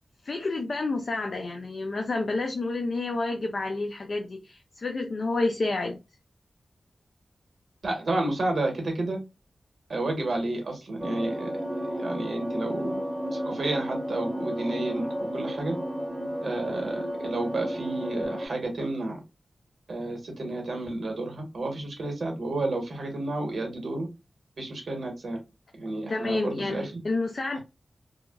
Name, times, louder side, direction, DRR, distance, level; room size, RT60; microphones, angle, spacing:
voice 1, 0.2-6.0 26.1-27.6, left 3 dB, 55° left, 0.4 m, -29 dB
voice 2, 7.8-9.2 9.9-11.6 11.9-13.0 13.3-15.8 16.4-19.2 19.9-24.1 24.6-25.4 25.8-27.0 27.5-27.6, right 2 dB, 70° right, 1.1 m, -31 dB
sound 1, 11.0-18.5, equal, 20° right, 0.9 m, -32 dB
2.8 x 2.3 x 2.3 m
wide cardioid pair, 115°, 0 cm